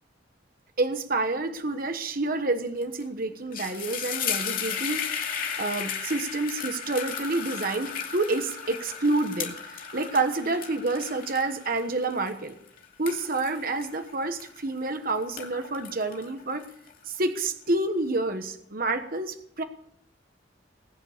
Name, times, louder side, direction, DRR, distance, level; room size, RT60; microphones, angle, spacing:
voice 1, 0.8-5.0 5.6-12.5 13.0-16.7 17.1-19.6, right 2 dB, 50° right, 8 dB, 1.2 m, -28 dB
sound 1, 2.8-3.0 3.3-14.9 15.2-17.2, left 7 dB, 45° left, 2.5 m, -35 dB
20.0 x 9.5 x 6.6 m, 0.70 s
head